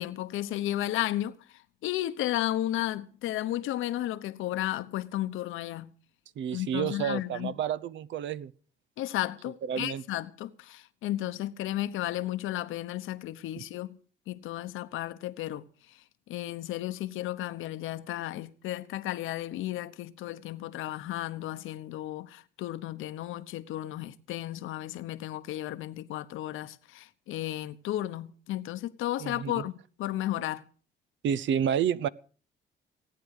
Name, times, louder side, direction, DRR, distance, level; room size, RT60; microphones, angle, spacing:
voice 1, 0.0-1.4 1.8-5.9 6.5-7.5 9.0-14.0 14.3-15.7 16.3-30.6, left 14 dB, 90° left, 1.0 m, -33 dB
voice 2, 6.4-8.5 9.7-10.0 29.2-29.6 31.2-32.1, right 8 dB, 70° right, 0.7 m, -30 dB
18.0 x 9.3 x 6.5 m
cardioid pair, 90°, 20 cm